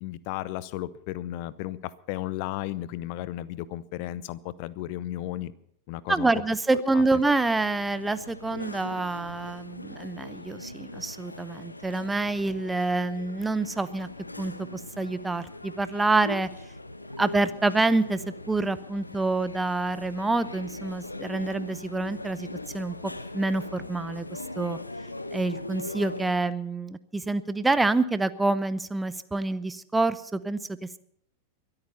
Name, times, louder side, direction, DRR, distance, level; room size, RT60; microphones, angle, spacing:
voice 1, 0.0-5.5 5.9-6.3 6.7-7.0, left 14 dB, 45° left, 19 dB, 0.8 m, -34 dB
voice 2, 6.1-14.1 14.4-16.5 17.2-22.5 22.7-23.0 23.3-24.8 25.3-31.0, right 3 dB, 10° right, 15 dB, 0.6 m, -27 dB
sound 1, 7.0-26.4, left 2 dB, 85° left, 1.1 m, -40 dB
23.0 x 8.9 x 5.5 m, 0.69 s
figure-of-eight pair, 90°, 0 cm